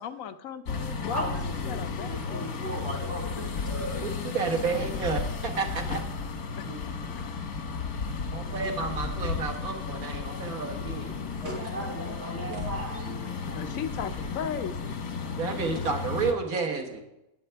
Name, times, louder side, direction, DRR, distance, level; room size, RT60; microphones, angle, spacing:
voice 1, 0.0-2.5 6.6-6.7 13.5-15.0 15.7-15.9, left 8 dB, 70° left, 10 dB, 1.0 m, -36 dB
sound 1, 0.7-16.3, left 5 dB, 90° left, 1.7 m, -34 dB
voice 2, 1.1-4.2 4.7-4.8 6.7-6.9 10.3-10.4 11.4-13.4 16.0-16.1, right 1 dB, 45° right, -2 dB, 3.9 m, -37 dB
voice 3, 4.0-6.0 8.3-11.1 15.4-17.0, right 4 dB, 85° right, 3 dB, 1.8 m, -31 dB
18.0 x 7.9 x 3.4 m, 0.88 s
omnidirectional pair, 1.5 m